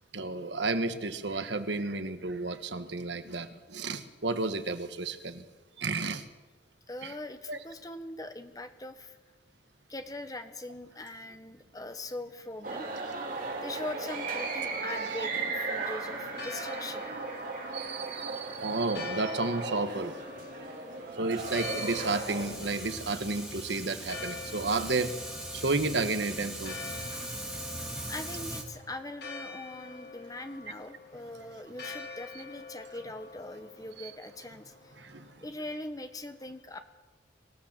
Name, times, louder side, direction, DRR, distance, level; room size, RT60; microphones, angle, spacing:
voice 1, 0.1-5.4 5.8-6.2 7.0-7.1 7.5-7.6 14.7-15.3 17.7-20.2 21.2-25.1 25.5-26.8 34.0-34.1 35.0-35.3, right 3 dB, 65° right, 10 dB, 1.5 m, -32 dB
voice 2, 6.9-9.2 9.9-12.9 13.6-17.1 28.1-34.9 35.4-36.8, left 2 dB, 20° left, 8 dB, 1.4 m, -41 dB
sound 1, 12.6-22.4, right 3 dB, 45° right, 3.7 m, -36 dB
Church bell, 16.0-35.4, left 4 dB, 55° left, 4.0 m, -46 dB
Fire, 21.4-28.6, right 1 dB, 5° right, 3.2 m, -40 dB
25.0 x 16.5 x 7.4 m, 1.2 s
head